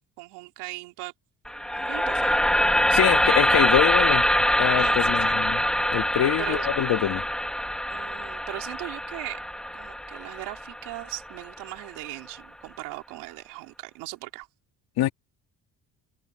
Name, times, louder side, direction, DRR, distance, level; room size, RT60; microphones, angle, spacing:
voice 1, 0.2-1.1 1.7-2.5 2.9-3.4 4.8-5.4 6.4-6.7 7.9-9.4 9.7-14.5, right 22 dB, 90° right, 3.9 m, -39 dB
sound 1, 1.5-11.6, equal, ahead, 3.5 m, -24 dB
voice 2, 2.9-4.2 4.6-5.6 5.9-7.2 15.0-15.1, left 13 dB, 70° left, 2.8 m, -24 dB
supercardioid pair, 85°, 39 cm